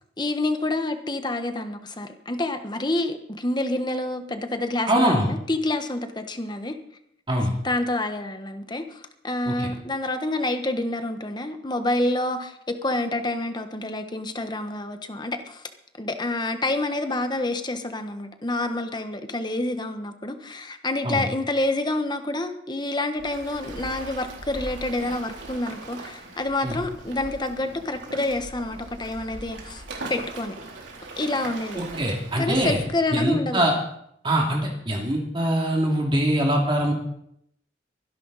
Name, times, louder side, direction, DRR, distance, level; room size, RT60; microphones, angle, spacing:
voice 1, 0.2-6.8 7.6-15.6 16.0-29.8 30.1-30.6 31.2-31.8 32.4-33.7, left 2 dB, 25° left, 7 dB, 1.3 m, -28 dB
voice 2, 4.9-5.3 7.3-7.5 9.5-9.6 21.0-21.2 26.6-26.7 31.8-32.8 33.1-33.7 34.2-36.9, right 1 dB, 25° right, 0 dB, 2.7 m, -23 dB
Waves surf, 23.2-32.9, right 2 dB, 85° right, 3.7 m, -40 dB
23.0 x 11.0 x 4.2 m, 0.73 s
head